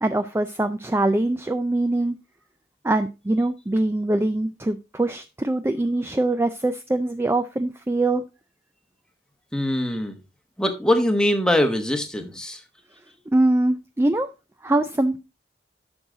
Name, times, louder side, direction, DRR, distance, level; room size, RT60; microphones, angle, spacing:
voice 1, 0.0-2.2 2.8-8.2 13.3-14.3 14.6-15.2, right 2 dB, 15° right, 10 dB, 0.3 m, -23 dB
voice 2, 9.5-10.2 10.6-12.6, left 1 dB, 5° left, 6 dB, 1.1 m, -22 dB
9.8 x 6.3 x 3.8 m, 0.28 s
head